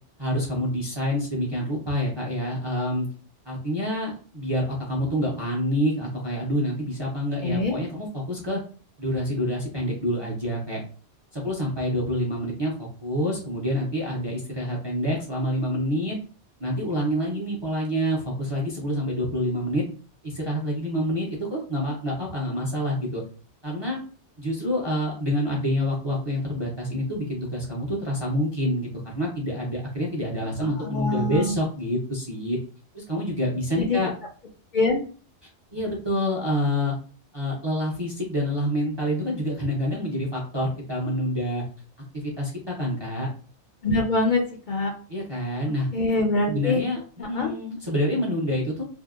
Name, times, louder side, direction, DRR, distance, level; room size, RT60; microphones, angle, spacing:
voice 1, 0.2-3.1 3.5-8.6 9.0-10.8 11.3-16.2 16.6-19.8 20.2-23.2 23.6-24.0 24.4-28.9 29.1-32.6 32.9-34.1 35.7-36.9 37.3-41.6 42.1-43.3 45.1-45.9 46.5-47.0 47.3-48.8, equal, 35° right, -3 dB, 0.4 m, -27 dB
voice 2, 7.4-7.7 30.6-31.6 33.8-34.0 34.7-35.0 43.8-44.4 44.7-44.9 45.9-46.8 47.2-47.5, left 2 dB, 60° left, 0 dB, 0.5 m, -24 dB
2.7 x 2.1 x 2.3 m, 0.40 s
omnidirectional pair, 1.2 m